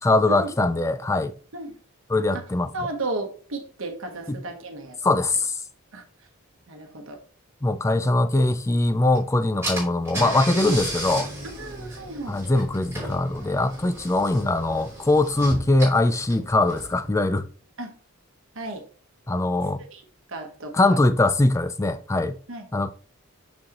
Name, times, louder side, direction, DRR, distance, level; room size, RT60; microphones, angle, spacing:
voice 1, 0.0-1.3 2.1-2.7 4.3-4.4 5.0-5.6 7.6-11.3 12.3-17.5 19.3-19.8 20.7-22.4 22.7-22.9, left 2 dB, 15° left, 0.3 m, -22 dB
voice 2, 2.7-5.0 5.9-6.0 6.7-7.2 7.9-8.0 10.5-10.7 11.6-12.4 17.8-17.9 18.5-18.8 19.9-20.0 20.3-21.0 22.5-22.7, right 2 dB, 65° right, 1.1 m, -34 dB
Car / Engine, 9.1-9.2 9.6-17.1, right 1 dB, 10° right, 3.2 m, -34 dB
6.2 x 6.2 x 2.9 m
head